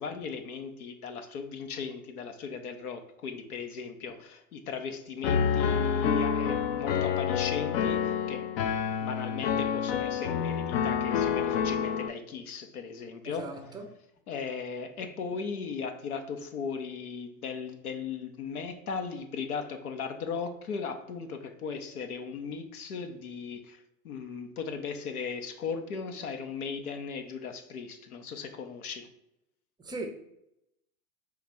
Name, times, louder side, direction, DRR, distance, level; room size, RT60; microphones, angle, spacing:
voice 1, 0.0-8.5 9.0-13.5 14.3-29.1, left 5 dB, 80° left, 0.7 m, -37 dB
Piano, 5.2-12.1, left 7 dB, 45° left, 0.4 m, -28 dB
voice 2, 13.2-13.9 29.8-30.1, right 3 dB, 10° right, 0.5 m, -38 dB
3.9 x 3.2 x 3.5 m
hypercardioid pair, 95°, 44 cm